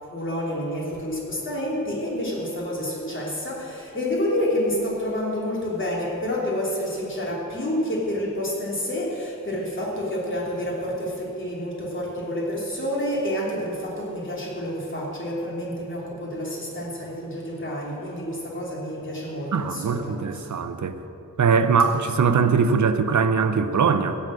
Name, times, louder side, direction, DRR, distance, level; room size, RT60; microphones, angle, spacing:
voice 1, 0.0-20.5, left 1 dB, 35° left, -4 dB, 3.2 m, -29 dB
voice 2, 19.5-21.0 21.4-24.2, right 5 dB, 60° right, 9 dB, 0.8 m, -21 dB
16.0 x 7.2 x 7.8 m, 2.9 s
wide cardioid pair, 145°, 32 cm